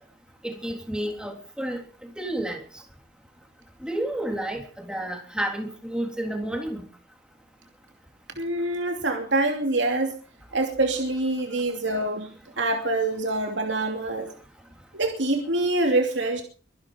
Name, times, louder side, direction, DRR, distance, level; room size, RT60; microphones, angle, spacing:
voice 1, 0.4-2.8 3.8-6.9, right 1 dB, 5° right, 3 dB, 3.5 m, -31 dB
voice 2, 8.4-10.2 10.5-12.3 12.6-14.3 14.9-16.4, right 2 dB, 70° right, 3 dB, 2.8 m, -25 dB
24.0 x 11.0 x 5.2 m, 0.41 s
head